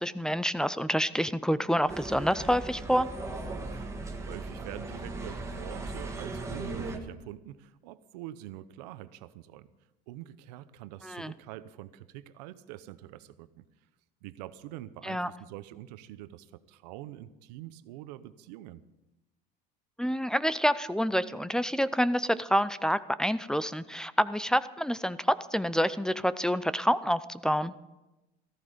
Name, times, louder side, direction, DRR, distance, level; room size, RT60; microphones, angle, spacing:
voice 1, 0.0-3.1 11.0-11.3 15.0-15.3 20.0-27.7, equal, 5° left, 16 dB, 0.4 m, -27 dB
sound 1, 1.9-7.0, right 2 dB, 15° right, 1.6 m, -38 dB
voice 2, 3.7-9.7 10.1-13.7 14.2-18.8, right 14 dB, 90° right, 14 dB, 0.8 m, -45 dB
14.5 x 14.0 x 5.1 m, 1.0 s
cardioid pair, 135°, 21 cm